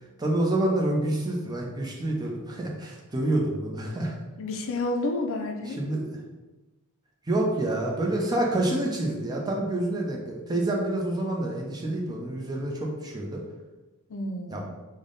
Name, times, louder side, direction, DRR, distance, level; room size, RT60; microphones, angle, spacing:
voice 1, 0.2-4.1 5.7-6.2 7.3-13.4 14.5-14.7, right 1 dB, 20° right, -2 dB, 0.5 m, -28 dB
voice 2, 4.4-5.8 14.1-14.7, left 2 dB, 65° left, 3 dB, 0.4 m, -30 dB
3.4 x 2.1 x 3.8 m, 1.1 s
head